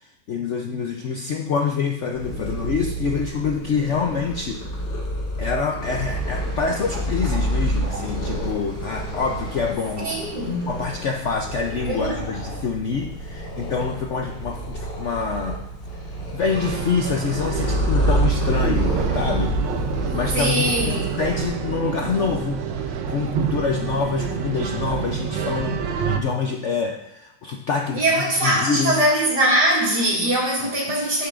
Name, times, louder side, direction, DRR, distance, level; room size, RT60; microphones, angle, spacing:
voice 1, 0.0-4.6 5.4-10.2 10.7-15.6 16.3-19.5 20.1-25.8 26.1-29.0, left 5 dB, 65° left, 0.7 m, -26 dB
Purr, 2.1-21.4, right 1 dB, 85° left, 2.6 m, -28 dB
sound 1, 6.1-11.3, right 1 dB, 40° right, 1.7 m, -39 dB
voice 2, 10.0-10.7 11.9-12.2 20.3-21.2 27.9-31.3, right 1 dB, 65° right, 2.9 m, -21 dB
sound 2, 16.5-26.2, right 7 dB, 85° right, 1.5 m, -28 dB
10.0 x 9.1 x 2.5 m
omnidirectional pair, 1.9 m